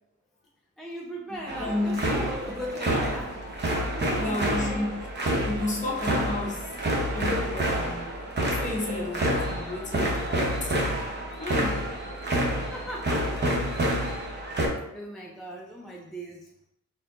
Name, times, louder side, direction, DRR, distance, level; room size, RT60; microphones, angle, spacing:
voice 1, 0.8-3.4 3.9-4.9 7.6-7.7 12.7-13.5 14.9-16.5, equal, ahead, -1 dB, 0.4 m, -38 dB
sound 1, 1.5-14.7, right 1 dB, 35° right, 0.9 m, -28 dB
voice 2, 1.6-2.0 4.0-4.9 5.3-6.7 7.1-11.0 11.4-11.9, left 2 dB, 25° left, -2 dB, 0.9 m, -32 dB
4.2 x 2.8 x 3.7 m, 0.84 s
wide cardioid pair, 140°, 30 cm